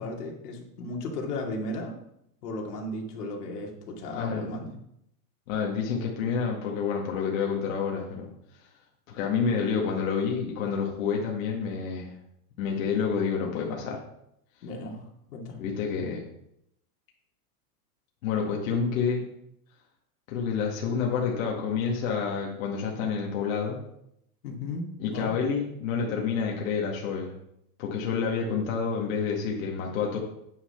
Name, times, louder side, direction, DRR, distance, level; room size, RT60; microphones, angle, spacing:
voice 1, 0.0-1.9 2.4-4.7 14.6-15.0 15.3-15.6 24.4-25.3, left 2 dB, 80° left, 1 dB, 2.5 m, -35 dB
voice 2, 4.1-4.5 5.5-8.3 8.6-8.7 9.1-12.1 12.6-14.0 15.6-16.2 18.2-19.2 20.3-23.8 25.0-27.3 27.8-30.2, left 6 dB, 60° left, -1 dB, 2.0 m, -28 dB
9.4 x 6.3 x 5.8 m, 0.78 s
supercardioid pair, 160°, 45 cm